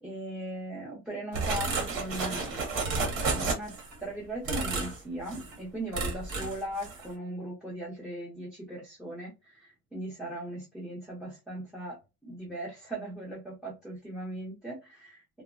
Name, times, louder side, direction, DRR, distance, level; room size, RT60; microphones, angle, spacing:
voice 1, 0.0-2.6 3.3-3.7 4.0-15.4, right 1 dB, ahead, 0.5 m, -39 dB
sound 1, 1.3-3.9 4.4-5.0 5.3-5.6 5.9-6.6 6.8-7.1, right 3 dB, 85° right, 1.3 m, -31 dB
2.8 x 2.0 x 2.4 m
cardioid pair, 165°, 36 cm